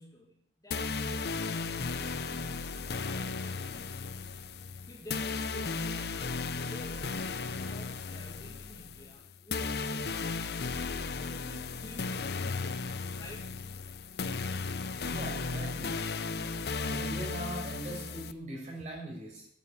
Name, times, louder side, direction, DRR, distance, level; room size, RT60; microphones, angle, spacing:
voice 1, 0.0-4.1 4.9-6.2 6.6-10.5 11.2-13.6, equal, 20° left, -1 dB, 2.1 m, -52 dB
sound 1, 0.7-18.3, left 4 dB, 55° left, 0.6 m, -35 dB
voice 2, 15.0-16.0 16.8-19.5, right 1 dB, 40° right, -2 dB, 5.7 m, -40 dB
9.2 x 9.2 x 9.7 m, 0.67 s
head